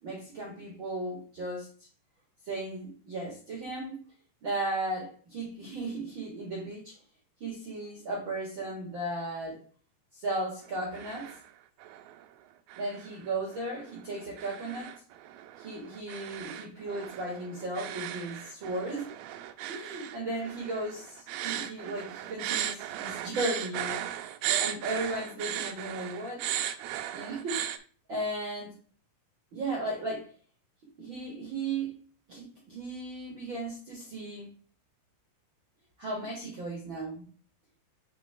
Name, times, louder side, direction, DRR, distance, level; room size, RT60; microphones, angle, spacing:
voice 1, 0.0-1.7 2.4-4.0 4.4-7.0 7.4-9.6 10.1-11.3 12.8-15.0 15.6-19.1 19.7-24.1 24.6-26.5 27.1-27.6 28.1-28.7 29.5-30.3 31.0-31.9 32.3-34.5 36.0-37.2, right 2 dB, 55° right, -3 dB, 1.3 m, -35 dB
sound 1, 10.7-11.5 11.8-12.3 12.7-27.8, right 11 dB, 80° right, 2.4 m, -37 dB
8.0 x 3.6 x 3.5 m, 0.42 s
omnidirectional pair, 4.7 m